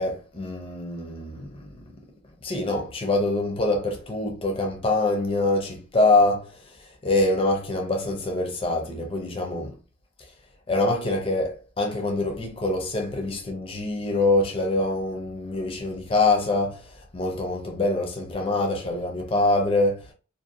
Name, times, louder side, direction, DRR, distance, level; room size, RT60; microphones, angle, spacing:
voice 1, 0.0-1.7 2.4-9.7 10.7-20.1, left 2 dB, 25° left, 0.5 m, -25 dB
2.6 x 2.2 x 2.5 m
head